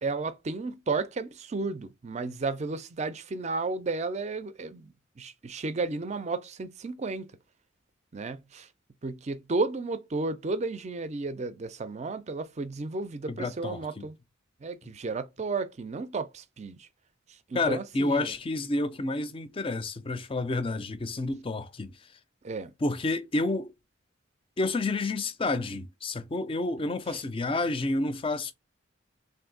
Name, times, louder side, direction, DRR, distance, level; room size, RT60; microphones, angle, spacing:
voice 1, 0.0-7.3 8.1-8.7 9.0-14.2 14.6-16.9 17.3-18.3 22.4-22.7, right 3 dB, 35° right, 0.4 m, -33 dB
voice 2, 13.3-14.1 17.5-22.0 22.8-23.7 24.6-28.5, left 2 dB, 25° left, 0.5 m, -29 dB
3.5 x 2.7 x 3.9 m
head